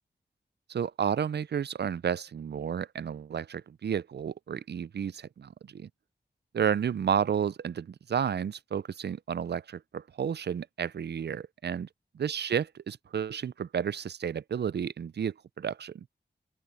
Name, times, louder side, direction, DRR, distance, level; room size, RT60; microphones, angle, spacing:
voice 1, 0.7-5.9 6.5-11.9 12.1-16.1, right 8 dB, 65° right, 0.5 m, -31 dB
open air
cardioid pair, 45°, 18 cm